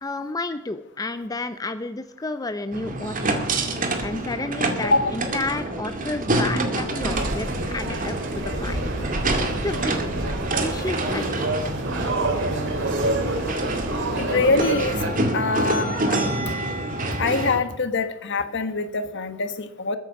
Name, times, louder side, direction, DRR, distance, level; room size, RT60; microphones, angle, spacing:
voice 1, 0.0-3.4 4.0-8.9 9.6-9.9 10.6-11.5, left 2 dB, 20° left, 10 dB, 0.5 m, -31 dB
sound 1, 2.7-17.6, right 2 dB, 40° right, 2.2 m, -27 dB
sound 2, 7.0-15.1, right 2 dB, 65° right, 2.8 m, -28 dB
voice 2, 14.2-15.0 15.3-16.2 17.2-20.0, left 3 dB, 60° left, 9 dB, 1.5 m, -24 dB
21.5 x 9.2 x 5.9 m, 0.88 s
head